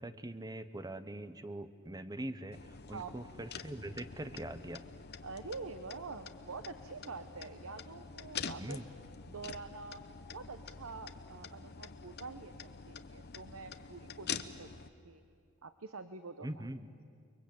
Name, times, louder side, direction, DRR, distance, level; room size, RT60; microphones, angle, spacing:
voice 1, 0.0-4.9 8.6-8.9 16.4-16.9, right 1 dB, 20° right, 11 dB, 1.0 m, -43 dB
sound 1, 2.5-14.9, left 6 dB, 50° left, 0.9 m, -46 dB
voice 2, 5.2-8.8 9.3-10.0 10.3-12.5 12.9-15.2 15.6-16.6, right 4 dB, 70° right, 9 dB, 1.0 m, -46 dB
29.5 x 22.5 x 8.7 m, 2.2 s
head